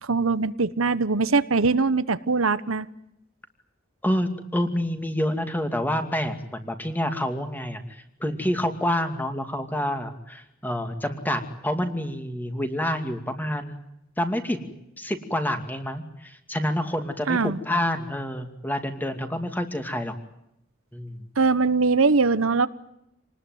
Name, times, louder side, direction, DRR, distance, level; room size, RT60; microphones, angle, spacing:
voice 1, 0.0-2.9 17.3-17.6 21.4-22.7, right 4 dB, 85° right, 15 dB, 1.0 m, -22 dB
voice 2, 4.0-13.8 14.2-14.7 15.0-20.1 20.9-21.2, left 1 dB, 10° left, 7 dB, 2.5 m, -28 dB
27.5 x 20.0 x 9.3 m, 0.82 s
head